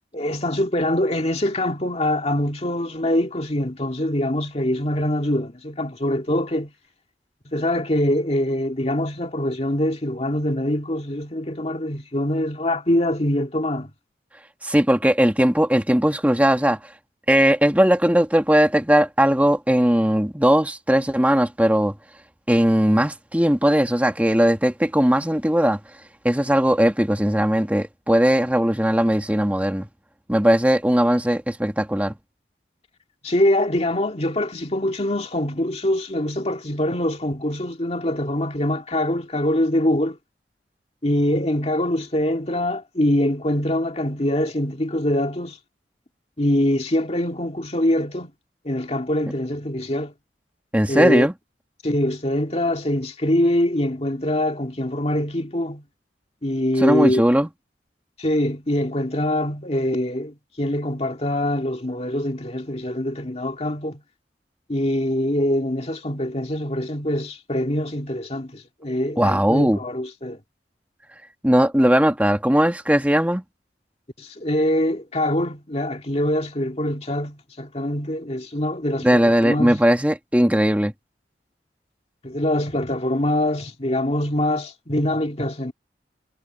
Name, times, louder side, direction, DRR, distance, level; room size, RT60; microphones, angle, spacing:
voice 1, 0.1-6.7 7.5-13.9 33.2-40.2 41.0-45.6 46.4-48.3 48.6-50.1 50.9-51.3 51.8-55.8 56.4-57.2 58.2-64.0 64.7-70.4 74.2-79.8 82.2-85.7, left 1 dB, 35° left, 2.2 m, -24 dB
voice 2, 14.6-16.8 17.3-21.9 22.5-25.8 26.2-29.9 30.3-32.1 50.7-51.3 56.8-57.5 69.2-69.8 71.4-73.4 79.0-80.9, equal, 10° right, 1.6 m, -18 dB
head